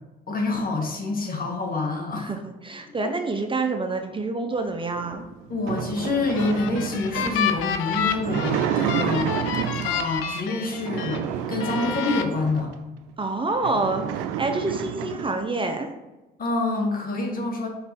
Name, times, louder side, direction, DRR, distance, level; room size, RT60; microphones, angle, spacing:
voice 1, 0.3-2.3 5.5-9.4 9.8-12.7 16.4-17.7, left 2 dB, 45° left, 0 dB, 1.9 m, -27 dB
voice 2, 2.2-5.2 13.2-15.9, right 3 dB, 25° right, 5 dB, 0.9 m, -27 dB
sound 1, 4.9-10.1 10.7-12.7 13.2-13.3 13.5-15.4, right 9 dB, 80° right, 0.5 m, -30 dB
sound 2, 6.1-11.2 11.6-12.2, left 8 dB, 80° left, 0.6 m, -29 dB
5.2 x 4.0 x 5.3 m, 1.1 s
hypercardioid pair, 60°, 20 cm